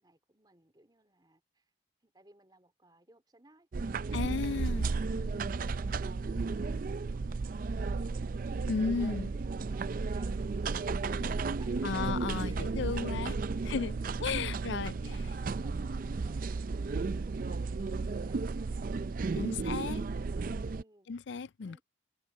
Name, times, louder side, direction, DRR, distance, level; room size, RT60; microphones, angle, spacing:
voice 1, 0.0-1.7 2.0-9.3 9.5-12.1 12.4-13.1 15.0-21.1 21.6-21.8, right 1 dB, 20° right, 3.6 m, -61 dB
sound 1, 3.7-20.8, right 4 dB, 45° right, 0.4 m, -34 dB
voice 2, 4.1-4.9 8.7-9.3 11.8-13.3 13.7-13.9 14.2-15.2 19.4-20.0 21.1-21.8, left 5 dB, 65° left, 0.4 m, -34 dB
head